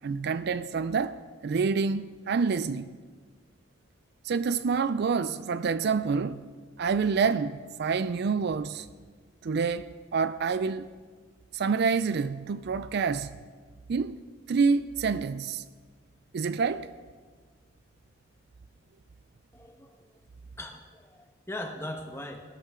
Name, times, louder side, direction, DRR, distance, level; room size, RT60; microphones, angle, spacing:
voice 1, 0.0-2.9 4.2-6.5 6.8-8.9 9.4-10.9 11.5-13.4 13.9-14.2 14.5-15.6 16.3-16.9, right 5 dB, 55° right, 0.4 m, -27 dB
voice 2, 19.5-20.2 20.6-22.4, left 1 dB, 10° left, 1.2 m, -40 dB
19.5 x 13.0 x 3.7 m
head